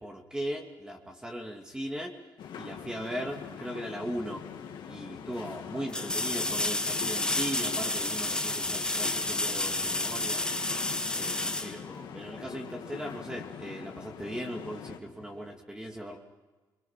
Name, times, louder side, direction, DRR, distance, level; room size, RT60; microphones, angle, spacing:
voice 1, 0.0-2.1 2.5-4.4 4.9-10.4 11.1-16.2, equal, 10° right, 1 dB, 2.6 m, -38 dB
sound 1, 2.4-15.0, left 8 dB, 85° left, 2.3 m, -43 dB
sound 2, 4.5-4.6 5.9-12.5 15.4-15.5, left 2 dB, 10° left, 2.0 m, -31 dB
25.5 x 22.5 x 5.9 m, 1.3 s
cardioid pair, 105°, 8 cm